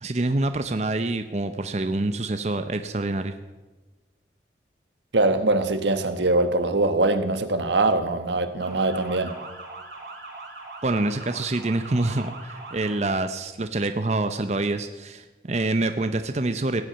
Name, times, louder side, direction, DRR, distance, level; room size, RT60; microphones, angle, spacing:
voice 1, 0.0-3.3 10.8-16.8, right 2 dB, 40° right, 9 dB, 0.7 m, -26 dB
voice 2, 5.1-9.3, right 2 dB, 85° right, 9 dB, 1.4 m, -22 dB
Motor vehicle (road) / Siren, 8.6-12.9, right 3 dB, 65° right, 4.2 m, -41 dB
17.0 x 8.2 x 8.9 m, 1.2 s
head